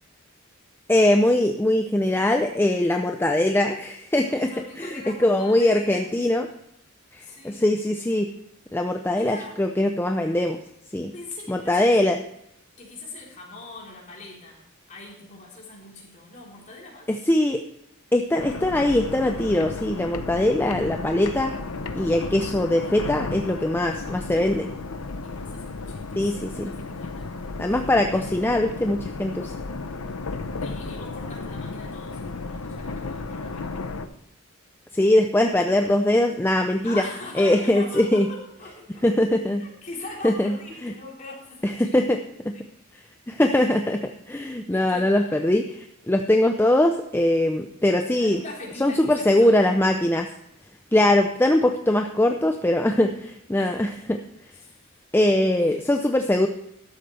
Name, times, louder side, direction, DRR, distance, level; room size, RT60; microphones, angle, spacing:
voice 1, 0.9-4.5 4.8-6.5 7.1-8.3 8.7-10.6 10.9-11.1 11.5-12.2 17.1-17.6 18.1-21.5 21.9-24.7 26.2-26.7 27.6-29.5 34.9-37.0 37.4-38.3 39.0-39.6 40.2-40.5 40.8-40.9 41.6-42.2 42.4-42.5 43.3-48.4 48.8-50.3 50.9-54.2 55.1-56.5, left 1 dB, 10° left, 5 dB, 0.5 m, -21 dB
voice 2, 4.2-6.1 7.2-7.7 9.1-9.6 11.1-12.2 12.8-17.1 23.8-24.1 25.2-27.5 28.1-28.4 30.6-33.7 36.8-39.0 39.6-42.0 42.5-42.6 43.4-43.8 44.3-45.3 48.2-49.6 53.5-53.9 54.5-55.0 55.6-55.8, left 2 dB, 35° left, -4 dB, 4.0 m, -42 dB
sound 1, 18.4-34.1, left 3 dB, 85° left, 0.8 m, -34 dB
13.0 x 12.0 x 3.3 m, 0.77 s
head